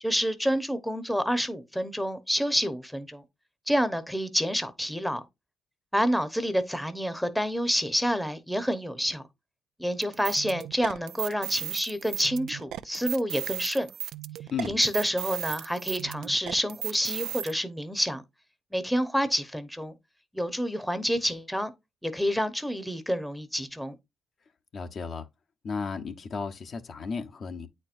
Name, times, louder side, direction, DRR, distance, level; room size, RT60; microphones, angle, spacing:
voice 1, 0.0-3.2 3.7-5.2 5.9-9.2 9.8-13.9 14.7-18.2 18.7-19.9 20.3-21.7 22.0-23.9, equal, ahead, 0.9 m, -28 dB
sound 1, 10.0-17.5, right 11 dB, 80° right, 0.3 m, -36 dB
voice 2, 24.7-25.3 25.6-27.7, left 5 dB, 50° left, 0.8 m, -34 dB
8.6 x 4.4 x 2.5 m
cardioid pair, 90°, 0 cm